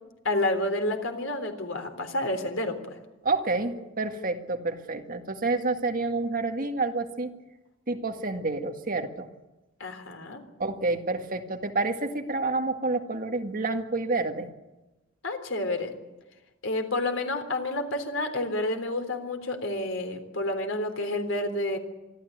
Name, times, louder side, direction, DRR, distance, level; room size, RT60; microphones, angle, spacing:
voice 1, 0.2-3.0 9.8-10.4 15.2-15.9 16.6-21.8, left 1 dB, 80° left, 6 dB, 3.6 m, -29 dB
voice 2, 3.2-7.3 7.9-9.3 10.6-14.5, right 3 dB, 45° right, 5 dB, 1.9 m, -29 dB
25.5 x 13.5 x 9.4 m, 1.1 s
head